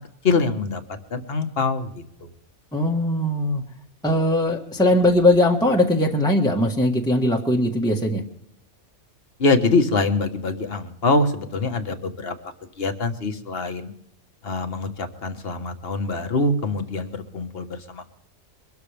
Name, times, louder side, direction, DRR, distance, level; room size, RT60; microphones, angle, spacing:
voice 1, 0.2-0.8 1.1-1.9 2.2-2.3 9.4-12.3 12.8-13.8 14.4-18.1, left 3 dB, 45° left, 7 dB, 1.5 m, -24 dB
voice 2, 2.7-3.6 4.0-8.2, left 1 dB, 5° left, 0 dB, 1.4 m, -20 dB
23.5 x 13.0 x 3.4 m, 0.71 s
omnidirectional pair, 1.5 m